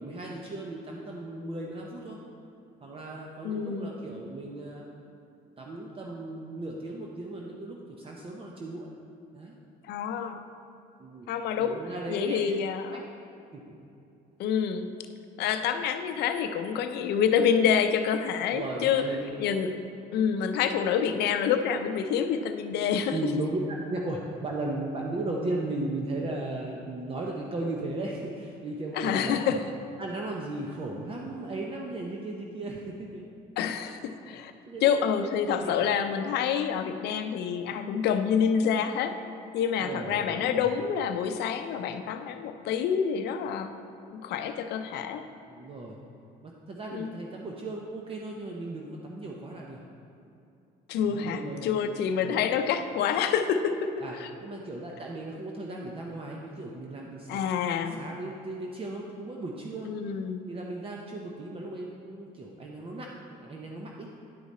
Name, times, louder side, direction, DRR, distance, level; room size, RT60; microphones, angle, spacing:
voice 1, 0.0-2.2 2.8-4.8 5.6-8.9 9.3-9.5 11.0-11.3 11.5-12.6 12.9-13.0 13.5-13.8 18.5-19.4 23.1-23.6 23.9-29.6 30.0-33.2 34.7-34.9 35.2-35.3 35.6-35.9 39.8-40.7 45.5-46.0 46.4-49.8 51.0-51.7 52.2-52.4 54.0-54.1 54.4-59.9 60.5-64.1, right 2 dB, 35° right, -1 dB, 0.7 m, -36 dB
voice 2, 3.4-3.9 9.8-10.4 11.3-11.8 12.1-13.0 14.4-14.9 15.4-19.0 19.4-19.7 20.1-23.2 28.9-29.6 33.6-34.5 34.8-39.1 39.5-43.7 44.1-45.2 46.9-47.1 50.9-54.3 57.3-58.0 59.8-60.5, left 7 dB, 75° left, 8 dB, 0.6 m, -27 dB
10.0 x 4.8 x 4.2 m, 2.7 s
cardioid pair, 110°, 17 cm